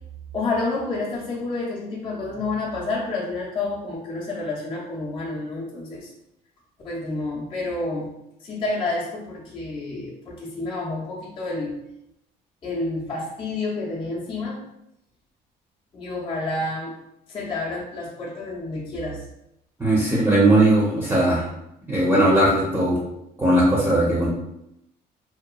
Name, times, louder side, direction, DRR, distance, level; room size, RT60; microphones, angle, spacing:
voice 1, 0.3-6.1 6.8-8.1 8.4-11.8 12.6-14.6 15.9-17.0 17.3-19.2, left 2 dB, 30° left, -6 dB, 0.6 m, -29 dB
voice 2, 19.8-21.5 21.9-23.0 23.4-24.3, right 1 dB, 10° right, -6 dB, 0.7 m, -18 dB
2.9 x 2.2 x 2.3 m, 0.82 s
cardioid pair, 110°, 17 cm